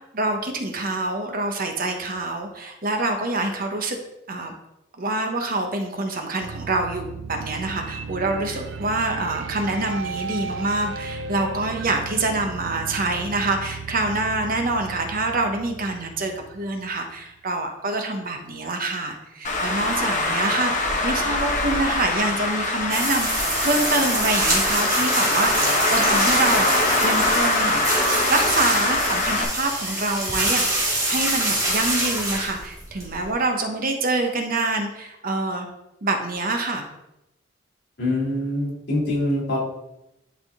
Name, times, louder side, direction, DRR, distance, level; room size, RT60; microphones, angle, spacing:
voice 1, 0.1-4.0 4.3-4.5 5.0-27.8 28.3-35.7 36.0-36.8, right 2 dB, 45° right, 4 dB, 0.9 m, -26 dB
sound 1, 6.4-17.3, right 4 dB, 65° right, 0.4 m, -36 dB
Traffic noise roadway noise, 19.4-29.4, left 2 dB, 40° left, 1.0 m, -23 dB
sound 2, 22.9-33.3, right 1 dB, 20° right, 1.8 m, -25 dB
voice 2, 38.0-39.6, left 1 dB, 60° left, -5 dB, 2.6 m, -24 dB
10.5 x 3.6 x 3.6 m, 0.90 s
head